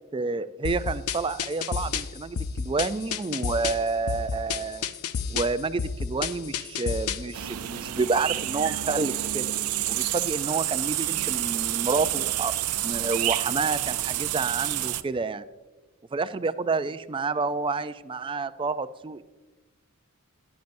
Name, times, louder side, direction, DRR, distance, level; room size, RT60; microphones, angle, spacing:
voice 1, 0.1-4.9 5.3-9.5 9.9-12.5 12.8-15.4 16.1-19.2, right 4 dB, 25° right, 13 dB, 0.3 m, -29 dB
sound 1, 0.6-7.3, left 6 dB, 85° left, 0.6 m, -31 dB
sound 2, 7.3-15.0, right 14 dB, 90° right, 0.5 m, -29 dB
16.0 x 10.5 x 2.6 m, 1.2 s
head